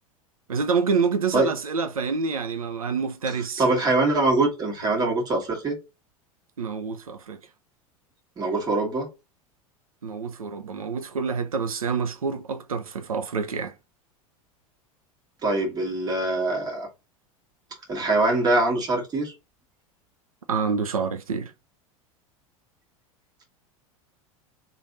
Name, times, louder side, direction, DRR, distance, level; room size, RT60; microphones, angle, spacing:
voice 1, 0.5-3.6 6.6-7.4 10.0-13.7 20.5-21.5, right 5 dB, 75° right, 0.6 m, -27 dB
voice 2, 3.6-5.8 8.4-9.1 15.4-16.9 17.9-19.3, right 2 dB, 20° right, 1.5 m, -23 dB
3.3 x 2.5 x 3.9 m
figure-of-eight pair, 85°, 18 cm